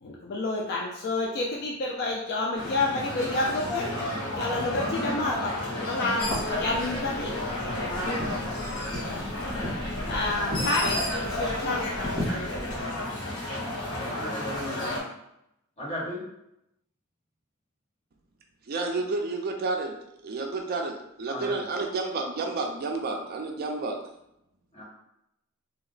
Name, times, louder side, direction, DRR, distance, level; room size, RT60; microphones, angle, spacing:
voice 1, 0.0-3.9 4.4-5.5 5.8-8.4 9.0-9.3 10.1-12.6, left 2 dB, 50° left, -2 dB, 0.4 m, -30 dB
sound 1, 2.5-15.0, left 1 dB, 70° left, 1.1 m, -32 dB
Bird, 6.2-12.8, left 1 dB, 85° left, 1.4 m, -38 dB
sound 2, 8.1-13.6, left 1 dB, ahead, 0.8 m, -38 dB
voice 2, 13.9-15.0 15.8-16.2 21.3-21.6 24.7-24.8, left 1 dB, 30° left, -8 dB, 1.4 m, -36 dB
voice 3, 18.7-20.0 20.2-24.0, right 3 dB, 45° right, 2 dB, 0.4 m, -30 dB
2.8 x 2.1 x 3.9 m, 0.82 s
head